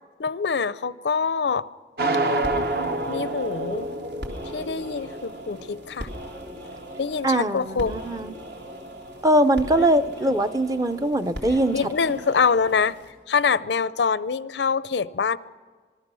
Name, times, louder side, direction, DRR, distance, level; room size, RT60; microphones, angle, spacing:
voice 1, 0.2-1.7 3.1-3.9 4.5-6.1 7.0-7.9 9.8-9.9 11.7-13.0 13.3-15.4, left 5 dB, 80° left, 0.5 m, -25 dB
sound 1, 2.0-6.0, right 2 dB, 55° right, 1.1 m, -28 dB
sound 2, 2.2-13.1, equal, 85° right, 3.3 m, -39 dB
voice 2, 7.2-8.3 9.2-11.8, right 1 dB, 20° right, 0.5 m, -21 dB
26.0 x 20.0 x 6.2 m
head